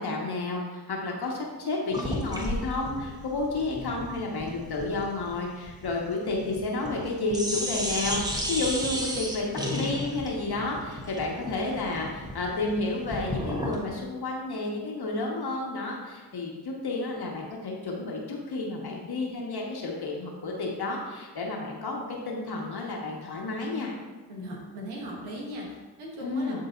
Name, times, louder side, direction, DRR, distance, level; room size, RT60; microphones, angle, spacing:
voice 1, 0.0-23.9 26.2-26.6, left 2 dB, 50° left, -1 dB, 1.7 m, -31 dB
sound 1, 1.9-7.1 7.3-13.9, equal, 10° right, 1.3 m, -33 dB
voice 2, 24.3-26.6, equal, 85° right, -2 dB, 1.5 m, -38 dB
11.0 x 3.8 x 2.7 m, 1.3 s
hypercardioid pair, 40°, 48 cm